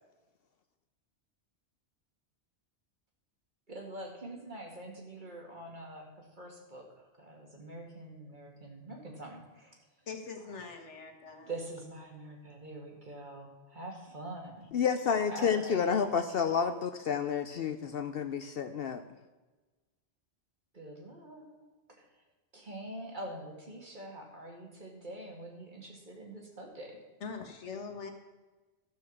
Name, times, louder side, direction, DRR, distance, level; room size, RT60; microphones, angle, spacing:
voice 1, 3.7-9.8 11.4-14.7 15.3-16.0 20.7-21.6 22.0-22.1 22.5-27.0, right 1 dB, 45° right, 0 dB, 2.3 m, -45 dB
voice 2, 10.1-11.5 27.2-28.1, left 5 dB, 85° left, 4 dB, 1.7 m, -42 dB
voice 3, 14.7-19.0, left 6 dB, 60° left, 9 dB, 0.8 m, -30 dB
13.0 x 6.3 x 7.2 m, 1.2 s
omnidirectional pair, 1.2 m